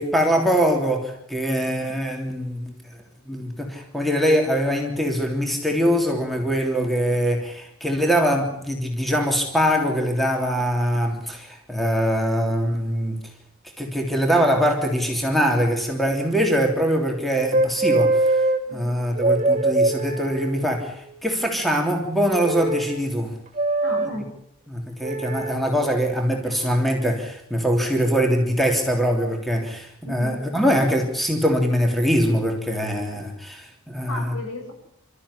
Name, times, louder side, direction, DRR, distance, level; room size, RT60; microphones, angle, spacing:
voice 1, 0.0-2.7 3.2-13.2 13.8-18.5 18.7-23.3 24.7-34.3, equal, ahead, 2 dB, 3.3 m, -23 dB
sound 1, 17.5-18.6 19.1-20.9 22.4-23.0 23.6-24.1 25.0-25.6 26.5-26.8, right 2 dB, 30° right, 3.1 m, -22 dB
voice 2, 18.7-19.0 23.8-24.3 30.0-30.4 34.1-34.7, left 1 dB, 75° left, 5 dB, 7.2 m, -34 dB
28.5 x 14.0 x 9.9 m, 0.72 s
head